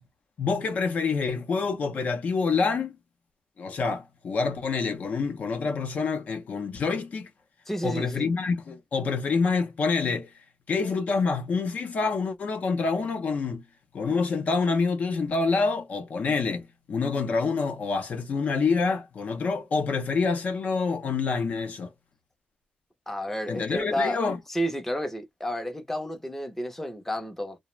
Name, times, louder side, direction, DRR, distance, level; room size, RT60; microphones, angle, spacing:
voice 1, 0.4-3.0 3.6-7.3 7.8-10.3 10.7-13.6 13.9-21.9 23.5-24.4, left 4 dB, 50° left, 0.6 m, -27 dB
voice 2, 7.7-8.3 23.1-24.2 24.5-27.6, equal, 10° left, 0.6 m, -31 dB
2.3 x 2.0 x 3.0 m
cardioid pair, 120°, 3 cm